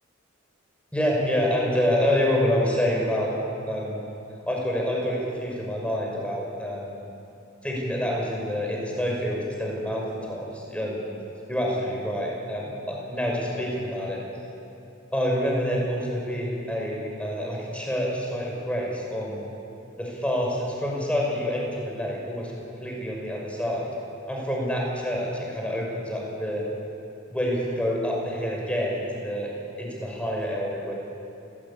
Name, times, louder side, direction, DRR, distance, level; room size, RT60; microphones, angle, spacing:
voice 1, 0.9-3.3 3.7-4.0 4.4-7.0 7.6-11.1 11.5-14.2 15.1-19.5 20.0-22.5 22.8-23.9 24.3-26.6 27.3-29.5 29.8-30.9, equal, 5° left, -2 dB, 6.2 m, -27 dB
29.0 x 17.0 x 8.8 m, 2.9 s
head